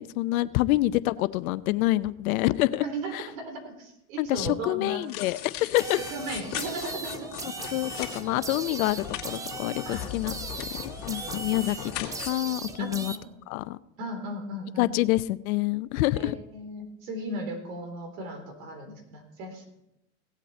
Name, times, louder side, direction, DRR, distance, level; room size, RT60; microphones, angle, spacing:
voice 1, 0.0-2.8 3.1-3.2 4.2-6.0 7.7-10.3 10.8-13.1 13.5-13.8 14.8-16.4, left 17 dB, 70° left, 15 dB, 0.7 m, -27 dB
voice 2, 2.8-5.0 6.1-7.3 9.9-10.1 11.2-11.4 12.8-13.4 14.0-14.9 16.2-19.6, right 1 dB, 70° right, 5 dB, 3.7 m, -36 dB
sound 1, 5.0-12.3, left 11 dB, 50° left, 2.4 m, -39 dB
sound 2, 5.8-13.2, right 4 dB, 10° right, 0.3 m, -38 dB
17.5 x 8.3 x 4.3 m, 0.85 s
supercardioid pair, 115°, 43 cm